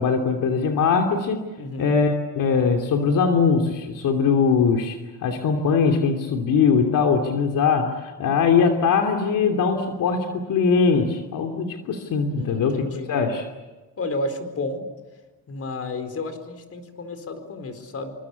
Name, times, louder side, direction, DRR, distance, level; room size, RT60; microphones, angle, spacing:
voice 1, 0.0-1.5 1.8-12.8 13.1-13.5, left 5 dB, 60° left, 4 dB, 3.0 m, -21 dB
voice 2, 1.6-1.9 12.3-13.1 14.0-14.8 15.5-18.1, left 2 dB, 40° left, 8 dB, 4.4 m, -31 dB
28.5 x 25.0 x 8.4 m, 1.2 s
cardioid pair, 140°, 36 cm